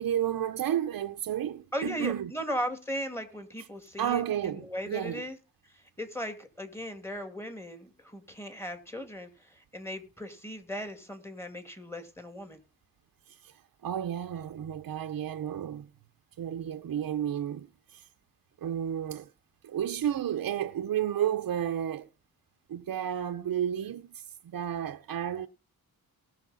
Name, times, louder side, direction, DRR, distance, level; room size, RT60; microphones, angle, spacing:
voice 1, 0.0-2.3 3.6-3.7 4.0-5.2 13.3-15.9 16.4-18.1 18.6-19.3 19.6-22.1 22.7-25.5, right 10 dB, 70° right, 0.8 m, -32 dB
voice 2, 1.7-5.4 5.7-12.6, equal, 5° left, 2.2 m, -37 dB
19.5 x 6.7 x 4.1 m
wide cardioid pair, 125°, 36 cm